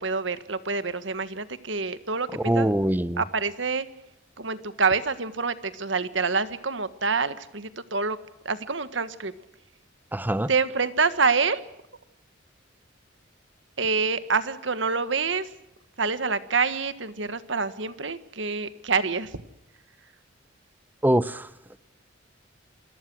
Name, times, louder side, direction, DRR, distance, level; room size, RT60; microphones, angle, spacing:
voice 1, 0.0-2.7 3.2-3.9 4.4-8.2 8.4-9.3 10.5-11.6 13.8-15.5 16.0-19.4, right 4 dB, 65° right, 1.6 m, -27 dB
voice 2, 2.3-3.2 10.1-10.5 21.0-21.5, right 1 dB, 10° right, 0.8 m, -23 dB
27.5 x 22.0 x 6.2 m
head